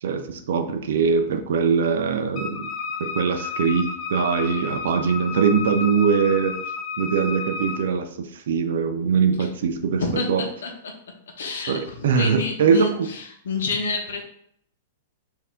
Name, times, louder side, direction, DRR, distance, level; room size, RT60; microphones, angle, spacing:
voice 1, 0.0-2.7 3.0-6.6 7.0-10.4 11.7-13.1, right 6 dB, 60° right, 7 dB, 0.5 m, -22 dB
Wind instrument woodwind instrument, 2.3-7.8, left 4 dB, 25° left, 0.5 m, -31 dB
voice 2, 10.0-10.9 11.4-14.2, left 3 dB, 90° left, 3 dB, 1.0 m, -28 dB
4.5 x 2.7 x 3.7 m, 0.68 s
supercardioid pair, 180°, 0 cm